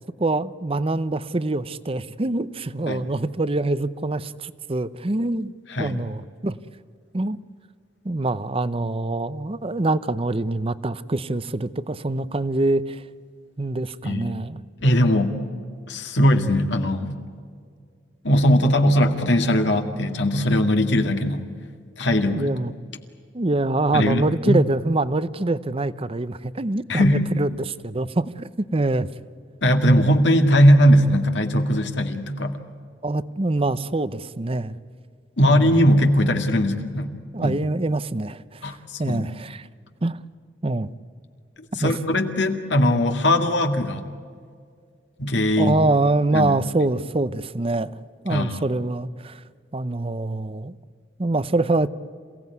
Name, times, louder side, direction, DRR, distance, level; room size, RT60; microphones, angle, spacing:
voice 1, 0.2-5.5 5.8-6.6 7.1-7.4 8.0-13.0 13.6-14.6 22.3-22.7 23.3-29.1 33.0-34.8 35.5-35.8 37.3-38.6 39.0-39.7 40.0-40.2 40.6-40.9 41.8-41.9 45.6-47.9 48.2-49.4 49.7-50.8 51.2-51.9, right 2 dB, 30° right, 16 dB, 0.7 m, -24 dB
voice 2, 14.0-14.4 14.8-15.4 15.9-17.2 18.2-21.5 22.0-22.5 23.9-24.6 26.9-27.3 29.6-32.6 35.4-37.1 37.4-37.6 38.6-39.2 41.8-44.1 45.2-45.9 46.3-46.5 48.3-48.6, equal, 70° left, 5 dB, 2.0 m, -19 dB
28.0 x 17.0 x 9.5 m, 2.1 s
head